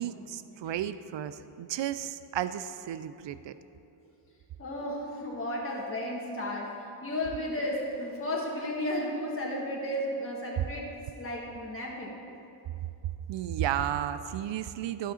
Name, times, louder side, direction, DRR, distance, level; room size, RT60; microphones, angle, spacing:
voice 1, 0.0-3.5 13.3-15.1, right 11 dB, 65° right, 13 dB, 0.5 m, -33 dB
voice 2, 4.6-6.7 7.0-12.2, left 1 dB, 25° left, -3 dB, 1.5 m, -33 dB
12.0 x 5.7 x 4.2 m, 2.8 s
cardioid pair, 55°, 47 cm